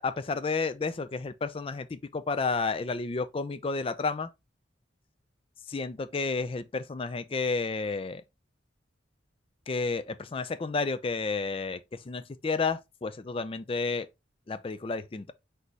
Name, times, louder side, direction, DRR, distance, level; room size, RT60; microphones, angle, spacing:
voice 1, 0.0-4.3 5.7-8.2 9.7-14.1 14.5-15.3, left 4 dB, 30° left, 0.4 m, -31 dB
4.1 x 3.4 x 3.1 m
head